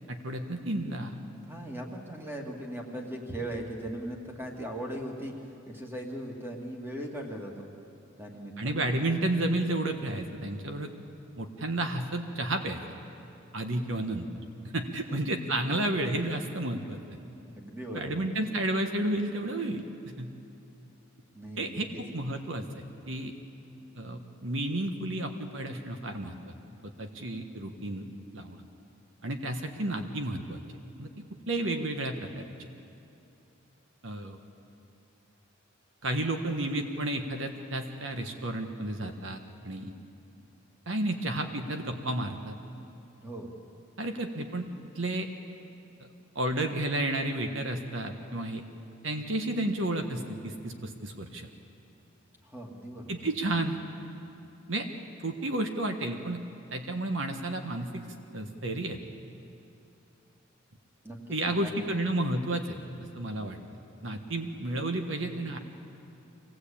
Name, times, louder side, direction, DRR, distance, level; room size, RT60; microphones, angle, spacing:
voice 1, 0.1-1.2 8.6-11.0 11.4-12.8 13.5-14.3 14.7-17.0 17.9-19.8 20.2-20.3 21.6-21.9 22.1-23.3 23.9-26.5 26.8-28.1 28.3-28.6 29.2-31.1 31.5-32.7 34.0-34.4 36.0-39.4 39.6-39.9 40.9-42.5 44.0-44.7 44.9-45.3 46.3-48.6 49.0-51.5 53.1-53.8 54.7-54.9 55.2-56.4 56.7-58.0 58.3-59.0 61.3-62.8 63.2-63.6 64.0-65.6, right 1 dB, 70° right, 5 dB, 1.4 m, -31 dB
voice 2, 1.4-5.3 5.7-7.7 8.2-8.8 15.1-15.2 17.5-18.2 21.3-21.7 43.2-43.5 52.4-53.2 61.0-61.7, right 1 dB, 10° right, 1 dB, 2.3 m, -39 dB
24.5 x 17.5 x 8.7 m, 2.8 s
head